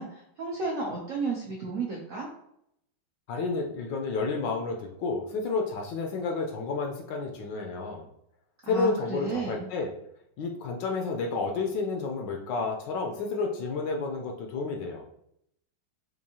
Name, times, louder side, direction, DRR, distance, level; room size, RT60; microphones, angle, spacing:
voice 1, 0.0-2.3 8.7-9.7, right 3 dB, 75° right, -3 dB, 0.7 m, -33 dB
voice 2, 3.3-8.0 8.6-9.9 10.4-15.0, left 4 dB, 75° left, 1 dB, 1.2 m, -30 dB
4.6 x 2.6 x 2.7 m, 0.75 s
omnidirectional pair, 2.2 m